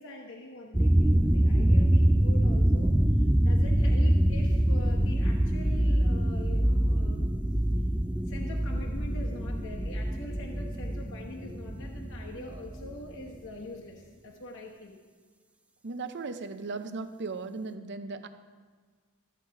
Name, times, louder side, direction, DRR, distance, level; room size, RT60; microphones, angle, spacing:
voice 1, 0.0-2.9 3.2-7.3 8.1-14.9, left 2 dB, 65° left, -1 dB, 1.1 m, -44 dB
sound 1, 0.7-12.9, right 1 dB, 5° right, 0.3 m, -25 dB
voice 2, 15.8-18.3, right 3 dB, 55° right, 10 dB, 0.6 m, -37 dB
13.0 x 8.1 x 4.6 m, 1.5 s
head